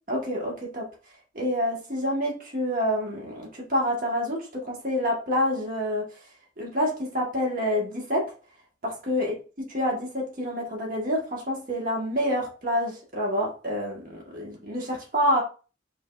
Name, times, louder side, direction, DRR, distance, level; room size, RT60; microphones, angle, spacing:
voice 1, 0.1-0.9 1.3-6.1 6.6-8.3 8.8-15.4, equal, 50° right, -2 dB, 1.2 m, -27 dB
5.3 x 3.4 x 2.3 m, 0.35 s
head